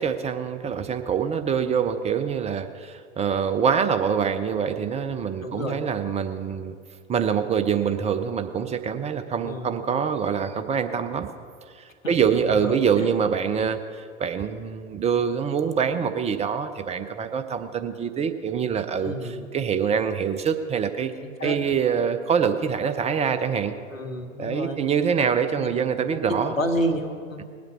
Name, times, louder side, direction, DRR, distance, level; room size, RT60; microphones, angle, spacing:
voice 1, 0.0-6.7 7.1-11.3 12.1-21.1 21.4-23.7 24.4-26.5, right 7 dB, 15° right, 9 dB, 0.5 m, -25 dB
voice 2, 5.4-5.8 9.4-9.8 12.0-12.1 12.6-13.1 19.0-19.5 21.2-21.6 23.9-24.8 25.5-25.7 26.1-27.4, equal, 85° left, 5 dB, 1.4 m, -30 dB
20.0 x 8.3 x 6.0 m, 2.1 s
figure-of-eight pair, 90°, 39 cm